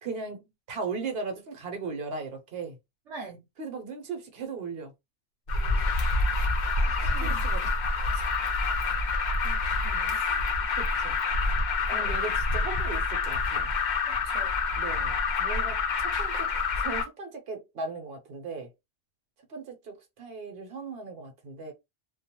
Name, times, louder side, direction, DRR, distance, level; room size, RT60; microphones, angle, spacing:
voice 1, 0.0-2.8 3.6-4.9 6.7-7.9 10.0-10.1 10.6-11.1 11.9-13.7 14.8-16.5 16.8-18.7 19.5-21.7, right 4 dB, 60° right, 1.0 m, -38 dB
voice 2, 3.1-3.4 6.8-7.4 8.1-8.2 9.4-10.2 11.9-12.2 14.1-14.6, right 4 dB, 85° right, 1.0 m, -44 dB
Alarm, 5.5-17.0, left 3 dB, 50° left, 0.6 m, -27 dB
2.4 x 2.2 x 2.8 m
omnidirectional pair, 1.2 m